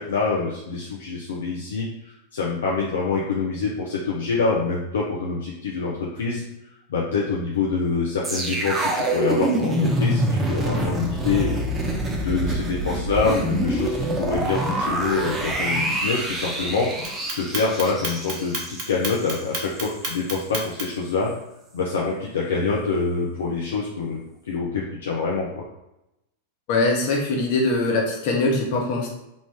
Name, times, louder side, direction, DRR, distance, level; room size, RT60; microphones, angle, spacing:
voice 1, 0.0-6.4 6.9-11.9 12.2-21.3 21.7-24.2 24.5-25.6, left 4 dB, 65° left, -4 dB, 0.5 m, -26 dB
sound 1, 8.2-19.4 19.8-19.9, right 1 dB, 20° right, 0.6 m, -26 dB
Clock, 17.0-21.1, right 3 dB, 45° right, 0.9 m, -30 dB
voice 2, 26.7-29.1, left 2 dB, 45° left, -1 dB, 0.9 m, -22 dB
3.5 x 2.5 x 3.4 m, 0.89 s
figure-of-eight pair, 90°, 0 cm